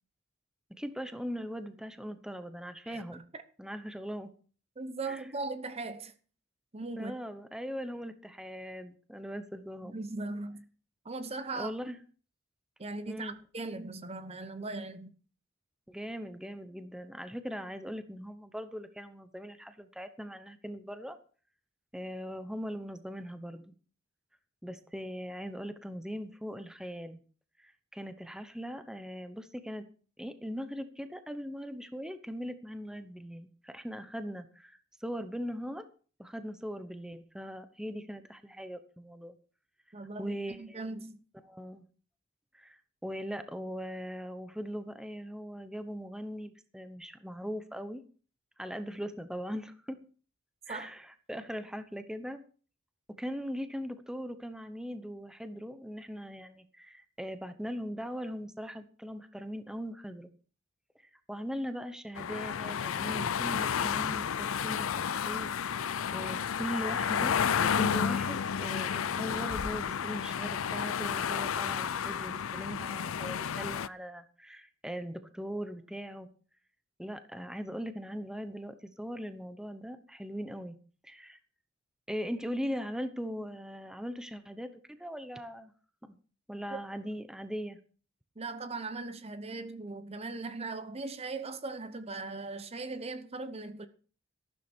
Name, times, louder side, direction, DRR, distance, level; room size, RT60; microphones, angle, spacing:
voice 1, 0.8-3.2 3.6-4.3 5.1-5.2 7.0-10.0 11.5-12.0 13.1-13.3 15.9-21.2 21.9-23.7 24.6-27.2 27.6-29.8 30.2-35.9 36.2-39.4 40.2-40.8 41.4-41.8 42.5-48.0 48.6-50.0 50.7-52.4 53.2-60.3 61.3-65.8 66.1-76.3 77.0-80.8 81.0-81.4 82.1-85.7 86.0-86.2 86.5-87.8, equal, 5° right, 1.0 m, -40 dB
voice 2, 4.8-6.1 6.7-7.1 9.8-10.6 11.0-11.7 12.8-15.1 39.9-41.2 50.7-50.9 86.7-86.8 88.4-93.9, right 3 dB, 30° right, 0.9 m, -39 dB
sound 1, 62.2-73.9, left 7 dB, 85° left, 0.5 m, -31 dB
14.0 x 12.0 x 4.5 m
head